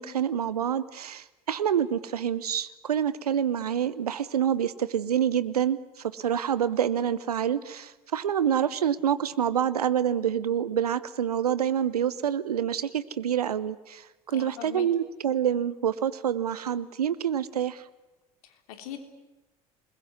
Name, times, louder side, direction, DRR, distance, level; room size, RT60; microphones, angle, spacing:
voice 1, 0.0-5.8 6.1-14.0 14.3-17.8, right 9 dB, 80° right, 17 dB, 1.0 m, -27 dB
voice 2, 14.3-14.9 18.4-19.0, left 10 dB, 70° left, 7 dB, 3.2 m, -41 dB
28.0 x 21.0 x 9.7 m, 1.1 s
figure-of-eight pair, 60°, 19 cm